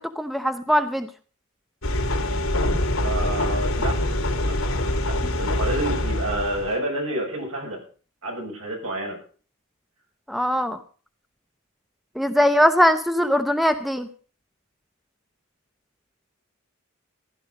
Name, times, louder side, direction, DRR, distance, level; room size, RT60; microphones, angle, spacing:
voice 1, 0.2-1.1 5.2-5.3 10.3-10.8 12.2-14.1, equal, ahead, 8 dB, 0.7 m, -21 dB
sound 1, 1.8-6.7, left 1 dB, 80° left, 2.9 m, -24 dB
voice 2, 3.0-3.9 4.4-4.6 5.1-7.8 8.2-9.2, right 1 dB, 75° right, 1 dB, 6.9 m, -29 dB
15.5 x 11.5 x 5.3 m, 0.40 s
head